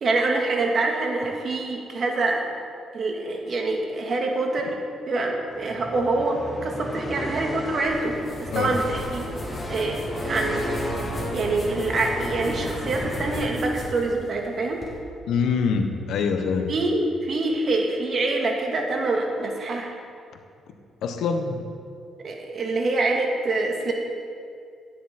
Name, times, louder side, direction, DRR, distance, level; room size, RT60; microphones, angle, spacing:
voice 1, 0.0-2.4 2.9-4.7 5.1-9.3 9.7-10.7 11.3-14.8 16.7-19.9 22.2-23.9, right 2 dB, 50° right, 1 dB, 1.8 m, -25 dB
sound 1, 5.5-14.1, left 1 dB, 15° left, 2.2 m, -33 dB
sound 2, 7.8-14.9, left 1 dB, 35° left, 3.0 m, -38 dB
voice 2, 15.3-16.7 21.0-21.6, left 5 dB, 75° left, 6 dB, 1.0 m, -24 dB
12.5 x 10.0 x 4.3 m, 2.4 s
cardioid pair, 90°, 0 cm